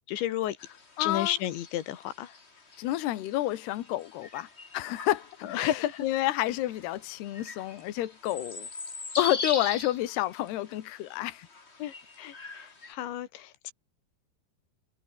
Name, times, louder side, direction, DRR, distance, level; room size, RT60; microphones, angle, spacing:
voice 1, 0.1-0.6 1.0-2.3 5.4-6.1 11.8-13.7, left 12 dB, 90° left, 4.1 m, -32 dB
sound 1, 0.6-12.9, left 3 dB, 25° left, 1.4 m, -42 dB
voice 2, 1.0-1.3 2.8-4.5 4.7-5.7 6.0-8.7 9.2-11.5, left 15 dB, 70° left, 3.4 m, -29 dB
omnidirectional pair, 5.1 m